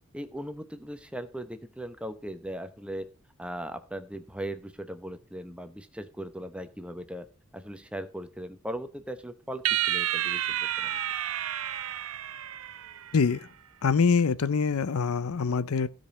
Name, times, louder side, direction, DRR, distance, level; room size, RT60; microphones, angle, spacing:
voice 1, 0.1-3.1 3.4-7.3 7.5-9.6 9.9-11.0, right 1 dB, 5° right, 0.8 m, -38 dB
sound 1, 9.7-13.2, right 11 dB, 80° right, 0.6 m, -30 dB
voice 2, 13.1-13.5 13.8-15.9, left 5 dB, 90° left, 0.6 m, -24 dB
15.5 x 5.3 x 5.3 m
head